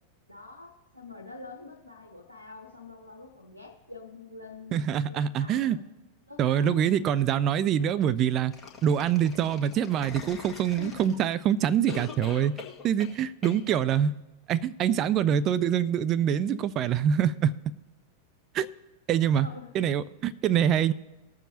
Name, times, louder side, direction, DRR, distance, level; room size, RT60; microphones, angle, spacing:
voice 1, 0.3-5.8 6.3-6.8 10.8-11.1 12.3-12.5 19.4-19.7, left 3 dB, 90° left, 0.9 m, -46 dB
voice 2, 4.7-5.8 6.4-8.5 8.8-12.5 12.8-14.2 14.5-17.5 18.5-18.7 19.1-19.5 19.7-20.9, right 9 dB, 35° right, 0.4 m, -25 dB
sound 1, 8.5-11.4 11.9-13.2 13.4-13.6, left 5 dB, 15° left, 1.5 m, -42 dB
19.5 x 7.2 x 2.8 m
figure-of-eight pair, 90°, 0 cm